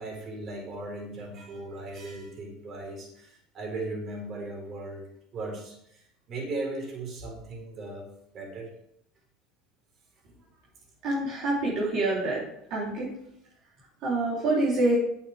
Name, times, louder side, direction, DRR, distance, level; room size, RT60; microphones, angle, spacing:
voice 1, 0.0-5.1 5.3-8.1 8.3-8.7, right 2 dB, 45° right, 0 dB, 4.3 m, -37 dB
voice 2, 11.0-12.4 12.7-13.1 14.0-15.0, right 2 dB, 60° right, -6 dB, 3.5 m, -26 dB
11.0 x 8.7 x 3.6 m, 0.76 s
supercardioid pair, 95°, 0 cm